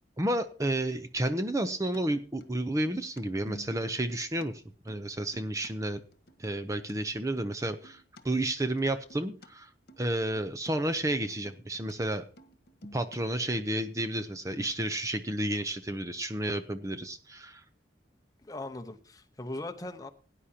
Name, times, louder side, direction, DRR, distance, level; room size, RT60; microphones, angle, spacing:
voice 1, 0.2-6.0 6.4-9.7 10.0-12.2 12.9-17.6, right 1 dB, 20° right, 9 dB, 0.7 m, -31 dB
sound 1, 1.6-4.5 4.7-5.7 6.1-6.9 7.2-8.2 8.6-9.5 9.9-10.1 10.3-10.7 11.0-11.9 12.2-13.4, left 1 dB, 60° left, 1.4 m, -52 dB
voice 2, 18.4-20.1, left 2 dB, 20° left, 7 dB, 1.0 m, -39 dB
17.5 x 9.9 x 2.9 m, 0.38 s
head